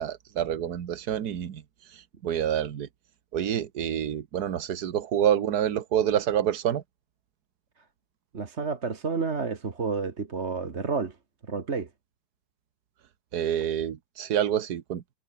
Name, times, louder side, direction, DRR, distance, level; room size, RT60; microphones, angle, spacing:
voice 1, 0.0-1.6 2.2-2.9 3.3-6.8 13.3-15.0, right 10 dB, 50° right, 1.6 m, -27 dB
voice 2, 8.3-11.1 11.5-11.9, right 4 dB, 35° right, 1.7 m, -30 dB
omnidirectional pair, 2.4 m